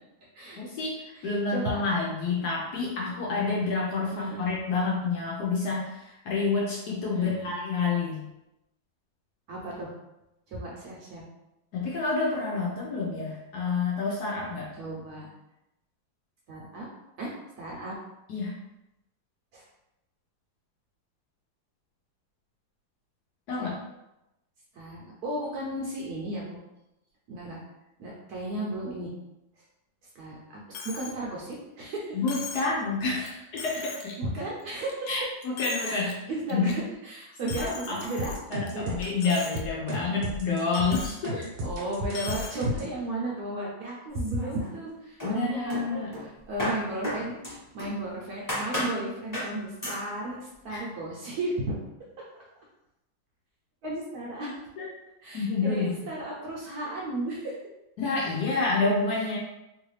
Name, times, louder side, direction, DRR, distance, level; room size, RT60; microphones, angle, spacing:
voice 1, 0.6-8.3 11.7-14.7 18.3-18.5 23.5-23.8 32.1-34.1 35.1-36.1 36.5-36.7 37.6-38.0 38.5-41.5 45.2-46.1 50.7-50.8 54.4-54.9 55.3-56.0 58.0-59.4, left 4 dB, 70° left, -4 dB, 1.0 m, -29 dB
voice 2, 1.1-1.8 4.1-4.5 7.1-7.5 9.5-9.9 10.5-11.2 14.8-15.3 16.5-16.9 17.2-18.0 19.5-19.6 23.6-23.7 24.7-26.6 27.3-27.6 28.0-29.1 29.6-29.7 30.1-32.2 33.2-33.4 34.2-35.1 35.8-38.3 38.7-39.0 40.7-41.1 41.6-47.3 47.7-51.8 52.2-52.3 53.8-54.6 55.2-57.6 58.5-58.6 59.1-59.4, right 1 dB, 65° right, -4 dB, 1.0 m, -34 dB
Coin (dropping), 30.7-31.2 31.5-31.6 32.3-32.7 33.3-33.4 33.6-34.1 34.6-35.1 35.4-36.1 36.5-36.7 37.5-38.7 39.0-39.6 39.9-40.0 40.7-41.2 42.1-42.6, left 5 dB, 90° left, 1.4 m, -39 dB
sound 1, 37.5-42.9, equal, 80° right, 1.4 m, -35 dB
sound 2, 44.1-44.9 45.2-48.0 48.5-49.0 49.3-49.6 49.8-50.1, left 1 dB, 15° left, 0.7 m, -33 dB
3.1 x 2.5 x 3.1 m, 0.90 s
omnidirectional pair, 2.1 m